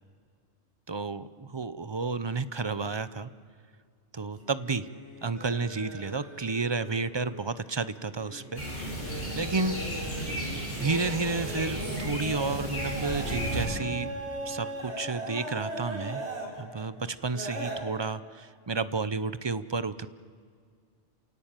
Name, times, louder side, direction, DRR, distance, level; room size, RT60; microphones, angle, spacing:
voice 1, 0.9-3.3 4.1-4.9 5.2-8.6 9.0-9.8 10.3-14.1 14.5-16.2 16.6-20.1, right 4 dB, 35° right, 14 dB, 0.5 m, -31 dB
sound 1, 4.3-7.6 8.1-16.6 17.3-17.8, right 1 dB, 60° right, 4.4 m, -39 dB
sound 2, 8.6-13.7, right 1 dB, 35° left, 5.6 m, -34 dB
29.0 x 17.5 x 8.9 m, 2.1 s
omnidirectional pair, 1.3 m